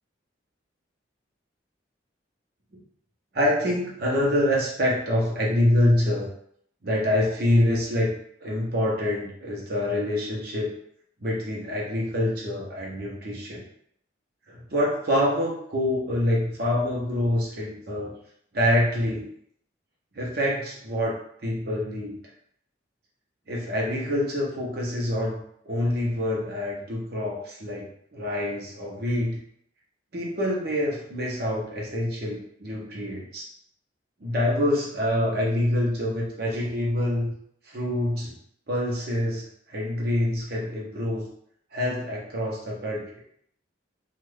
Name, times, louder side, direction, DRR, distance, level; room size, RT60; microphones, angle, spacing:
voice 1, 3.3-6.3 6.8-8.1 8.4-10.8 11.2-13.6 14.5-18.1 18.5-19.3 20.1-21.2 21.4-22.2 23.5-25.4 25.6-29.4 30.1-33.5 34.2-37.3 37.7-38.3 38.7-41.3 41.7-43.1, left 1 dB, 55° right, -3 dB, 0.8 m, -26 dB
2.4 x 2.3 x 3.3 m, 0.67 s
head